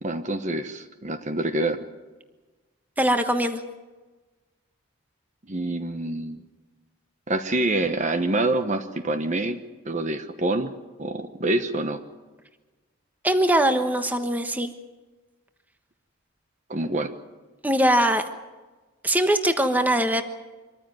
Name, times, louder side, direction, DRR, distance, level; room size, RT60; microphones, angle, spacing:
voice 1, 0.0-1.9 5.5-6.4 7.3-9.6 9.8-10.7 11.0-12.0 16.7-17.1, right 2 dB, 35° right, 8 dB, 1.1 m, -26 dB
voice 2, 3.0-3.6 13.2-14.7 17.6-18.2 19.0-20.2, right 1 dB, 5° right, 7 dB, 1.2 m, -21 dB
25.0 x 14.5 x 9.3 m, 1.2 s
head